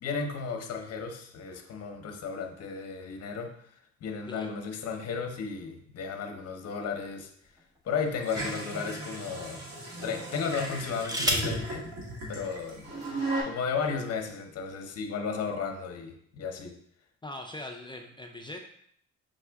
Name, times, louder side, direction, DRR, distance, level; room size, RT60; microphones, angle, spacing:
voice 1, 0.0-3.5 4.0-7.3 7.8-9.6 10.0-11.9 12.3-16.8, left 5 dB, 55° left, 4 dB, 0.7 m, -34 dB
voice 2, 4.3-4.6 17.2-18.6, left 1 dB, 15° left, 3 dB, 0.3 m, -41 dB
sound 1, 6.8-8.1 8.8-8.9 10.6-11.6 12.8-12.9 13.2-13.6, equal, 10° right, 0.7 m, -33 dB
sound 2, 8.2-13.4, right 2 dB, 60° right, 1.7 m, -36 dB
5.3 x 2.4 x 3.3 m, 0.66 s
cardioid pair, 90°, 30 cm